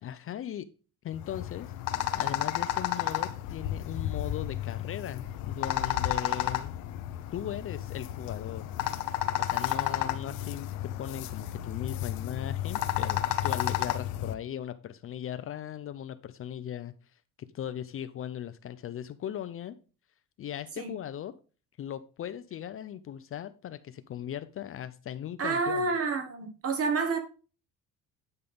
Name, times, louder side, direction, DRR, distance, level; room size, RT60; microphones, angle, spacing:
voice 1, 0.0-0.7 1.0-1.7 2.2-6.8 7.3-8.8 9.3-16.9 17.4-19.8 20.4-21.3 21.8-25.9, left 10 dB, 40° left, 0.5 m, -38 dB
sound 1, 1.1-14.3, left 13 dB, 90° left, 0.8 m, -32 dB
voice 2, 25.4-27.2, right 4 dB, 45° right, 1.4 m, -29 dB
9.8 x 5.4 x 3.4 m
cardioid pair, 140°, 34 cm